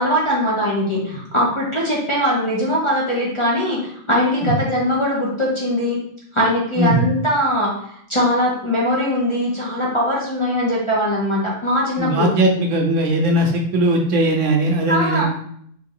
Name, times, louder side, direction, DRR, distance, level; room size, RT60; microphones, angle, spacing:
voice 1, 0.0-3.8 4.1-6.0 6.3-7.7 8.1-12.3 14.9-15.2, equal, 30° left, -5 dB, 0.7 m, -20 dB
voice 2, 6.8-7.1 12.0-15.2, right 1 dB, 70° right, 2 dB, 1.0 m, -19 dB
3.2 x 2.7 x 3.7 m, 0.66 s
omnidirectional pair, 1.3 m